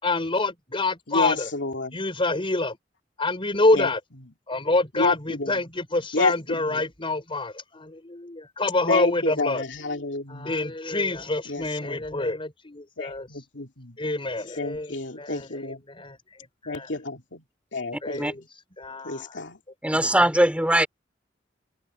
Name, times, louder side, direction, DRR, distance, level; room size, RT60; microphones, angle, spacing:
voice 1, 0.0-1.5 1.9-2.8 3.2-4.0 4.5-9.6 10.3-13.3 14.0-16.2 16.6-16.9 18.0-18.4 18.8-19.4, left 2 dB, 30° left, 4.5 m, -27 dB
voice 2, 1.1-2.0 3.7-3.9 5.0-5.5 6.1-6.8 8.9-10.5 11.5-11.9 13.0-14.0 14.6-15.8 16.7-17.4 17.7-18.2 19.0-19.6, left 3 dB, 80° left, 2.6 m, -29 dB
voice 3, 19.8-20.9, right 1 dB, 5° right, 3.0 m, -20 dB
head